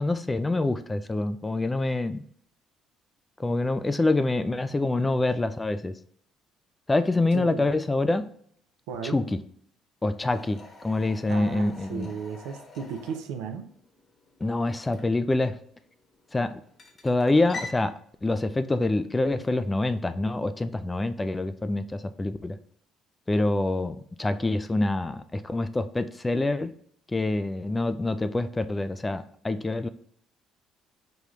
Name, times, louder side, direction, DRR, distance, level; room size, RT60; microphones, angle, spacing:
voice 1, 0.0-2.2 3.4-5.9 6.9-8.3 9.0-9.4 10.0-12.1 14.4-15.6 16.3-16.6 17.0-17.9 18.2-22.6 23.3-26.7 27.1-29.9, left 2 dB, 20° left, 11 dB, 0.3 m, -26 dB
voice 2, 7.3-7.7 8.9-9.2 11.2-13.7, right 6 dB, 85° right, 7 dB, 0.4 m, -35 dB
sound 1, 10.3-17.8, left 3 dB, 45° left, 1.1 m, -46 dB
5.1 x 2.3 x 3.1 m, 0.63 s
supercardioid pair, 70°, 0 cm